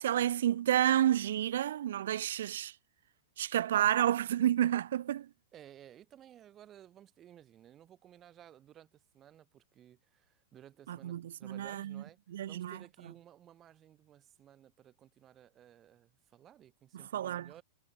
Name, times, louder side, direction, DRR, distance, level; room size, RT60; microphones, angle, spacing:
voice 1, 0.0-2.7 3.4-5.3 10.9-12.0 12.3-12.8 16.9-17.6, right 11 dB, 70° right, 1.2 m, -30 dB
voice 2, 5.5-12.2 12.5-17.6, right 11 dB, 20° right, 4.6 m, -57 dB
supercardioid pair, 175°, 0 cm